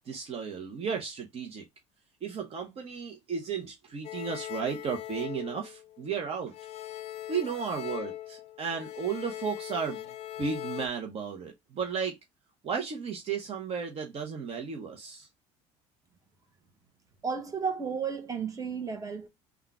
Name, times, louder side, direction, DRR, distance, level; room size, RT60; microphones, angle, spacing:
voice 1, 0.1-1.6 2.2-6.5 7.3-10.1 10.4-12.2 12.6-15.3, right 6 dB, 40° right, 0.9 m, -34 dB
sound 1, 4.0-6.2 6.5-10.9, left 13 dB, 45° left, 0.5 m, -40 dB
voice 2, 17.2-19.3, right 6 dB, 20° right, 1.1 m, -33 dB
3.6 x 2.4 x 4.5 m
supercardioid pair, 100°, 15 cm